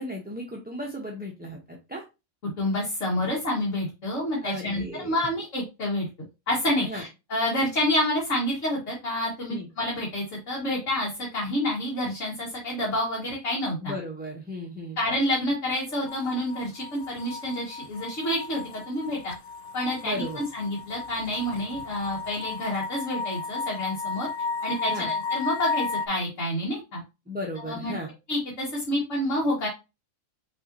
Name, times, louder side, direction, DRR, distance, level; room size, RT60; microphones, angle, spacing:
voice 1, 0.0-2.0 4.4-5.1 6.8-7.0 9.5-9.7 13.8-15.0 20.0-20.4 24.9-25.1 27.3-28.1, equal, 10° right, 0 dB, 0.6 m, -35 dB
voice 2, 2.6-6.0 6.5-13.9 15.0-19.3 19.7-24.3 24.6-27.0 27.6-27.9 28.3-29.7, left 1 dB, 60° left, -4 dB, 1.9 m, -28 dB
sound 1, 16.1-26.1, left 4 dB, 90° left, 0.4 m, -34 dB
5.5 x 3.5 x 2.6 m, 0.26 s
omnidirectional pair, 1.5 m